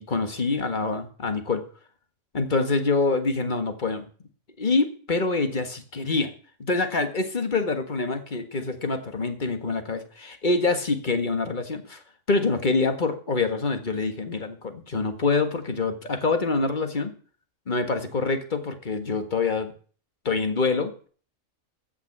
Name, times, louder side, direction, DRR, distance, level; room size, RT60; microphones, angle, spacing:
voice 1, 0.0-1.6 2.3-4.0 4.6-6.3 6.6-12.0 12.3-17.1 17.7-19.7 20.3-21.1, left 3 dB, 35° left, 7 dB, 1.8 m, -26 dB
15.0 x 6.0 x 7.4 m, 0.42 s
omnidirectional pair, 1.4 m